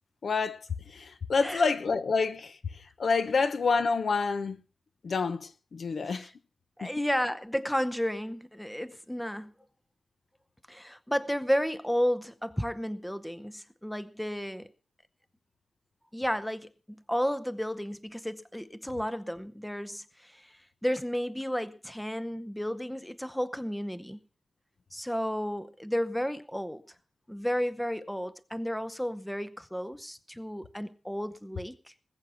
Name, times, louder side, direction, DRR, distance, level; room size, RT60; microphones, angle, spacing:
voice 1, 0.2-0.6 0.9-2.6 3.0-4.6 5.0-6.3 6.8-7.0, left 4 dB, 65° left, 1.1 m, -28 dB
voice 2, 1.4-2.0 6.1-6.3 6.8-9.5 10.7-14.7 16.1-24.2 24.9-26.8 27.3-31.9, equal, 5° left, 0.7 m, -32 dB
20.0 x 8.3 x 5.9 m
wide cardioid pair, 155°, 0 cm